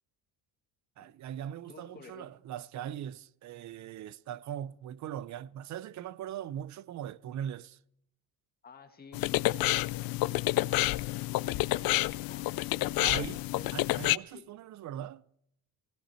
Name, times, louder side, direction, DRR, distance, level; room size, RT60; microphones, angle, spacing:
voice 1, 1.0-7.8 13.0-13.4 13.7-15.2, right 10 dB, 50° right, 0.5 m, -40 dB
voice 2, 1.7-2.4 8.6-12.8 13.0-13.8 14.3-14.5, left 5 dB, 25° left, 1.9 m, -53 dB
sound 1, 9.1-14.2, left 18 dB, 70° left, 0.5 m, -29 dB
18.0 x 16.0 x 4.3 m
cardioid pair, 155°, 37 cm